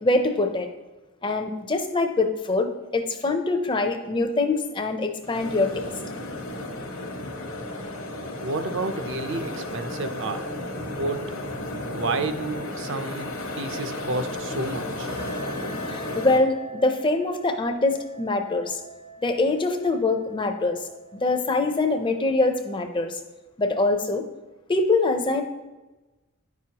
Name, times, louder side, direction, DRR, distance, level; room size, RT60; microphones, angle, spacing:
voice 1, 0.0-0.7 1.2-5.9 15.9-18.8 19.2-23.2 23.6-24.2 24.7-25.4, left 2 dB, 20° left, 6 dB, 0.5 m, -24 dB
sound 1, 5.2-16.4, left 1 dB, 70° left, 1.0 m, -33 dB
voice 2, 8.4-10.5 10.9-11.2 11.9-13.3 13.6-15.1, right 3 dB, 55° right, 9 dB, 0.5 m, -30 dB
sound 2, 15.1-23.2, right 2 dB, 85° right, 2.2 m, -45 dB
9.7 x 6.1 x 2.9 m, 1.1 s
head